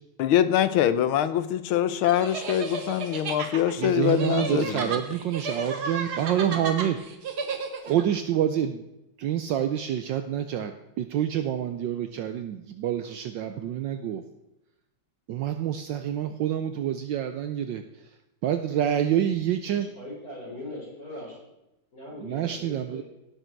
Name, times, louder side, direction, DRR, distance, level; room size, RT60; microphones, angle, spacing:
voice 1, 0.2-4.9, left 10 dB, 85° left, 1.6 m, -24 dB
sound 1, 2.0-8.0, right 4 dB, 55° right, 1.6 m, -33 dB
voice 2, 3.8-7.0 7.8-8.9 9.2-14.2 15.3-18.2 18.4-19.9 22.2-23.0, right 10 dB, 70° right, 1.2 m, -27 dB
voice 3, 19.7-21.4 21.9-23.0, left 1 dB, 45° left, 5.6 m, -40 dB
17.0 x 6.5 x 4.5 m
omnidirectional pair, 2.2 m